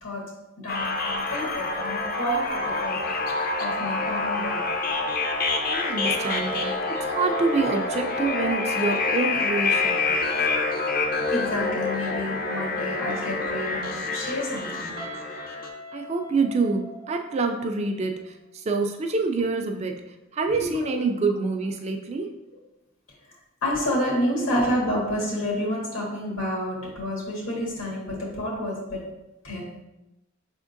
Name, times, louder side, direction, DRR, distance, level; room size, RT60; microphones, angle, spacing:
voice 1, 0.0-3.1 3.6-4.7 11.3-14.9 20.5-21.0 23.6-29.0 29.4-29.7, equal, 80° left, -3 dB, 1.6 m, -29 dB
sound 1, 0.7-15.7, left 3 dB, 45° left, 0.5 m, -27 dB
voice 2, 5.7-10.1 15.9-22.3, right 3 dB, 30° right, 4 dB, 0.3 m, -27 dB
Guitar, 15.0-17.8, equal, 75° right, 0.6 m, -42 dB
5.7 x 3.5 x 2.5 m, 0.95 s
head